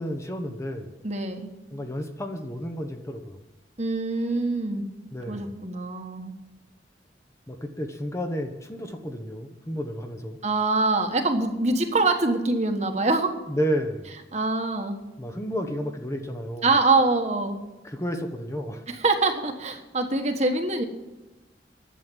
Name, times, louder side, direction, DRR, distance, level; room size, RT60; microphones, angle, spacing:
voice 1, 0.0-0.9 1.7-3.4 5.1-5.5 7.5-10.4 13.5-14.1 15.2-16.7 17.8-18.8, equal, 15° left, 5 dB, 1.0 m, -31 dB
voice 2, 1.0-1.5 3.8-4.8 5.3-6.3 10.4-13.3 14.3-15.0 16.6-17.6 18.9-20.8, right 3 dB, 40° right, 5 dB, 1.4 m, -24 dB
11.0 x 7.7 x 9.2 m, 1.1 s
head